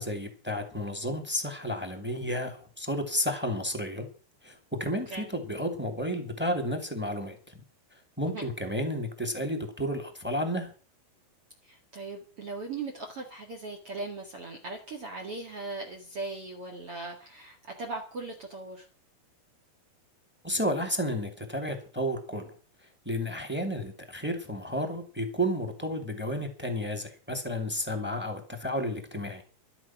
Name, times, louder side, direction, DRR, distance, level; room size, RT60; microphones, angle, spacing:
voice 1, 0.0-4.1 4.4-7.5 8.2-10.7 20.4-22.5 23.0-29.4, equal, 5° right, 7 dB, 1.8 m, -32 dB
voice 2, 11.6-18.9, right 3 dB, 45° right, 4 dB, 2.4 m, -39 dB
12.5 x 12.0 x 6.0 m, 0.38 s
omnidirectional pair, 4.4 m